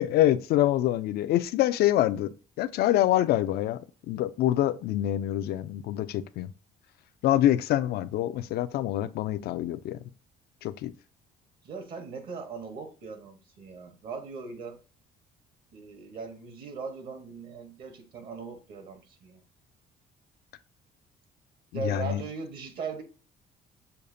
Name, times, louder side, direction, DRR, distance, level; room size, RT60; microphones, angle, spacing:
voice 1, 0.0-3.8 4.1-6.5 7.2-10.0 10.6-10.9 21.7-22.2, left 13 dB, 70° left, 0.4 m, -25 dB
voice 2, 11.6-14.8 15.7-19.4 21.7-23.0, right 5 dB, 60° right, 1.1 m, -39 dB
6.5 x 2.4 x 2.6 m
cardioid pair, 110°, 17 cm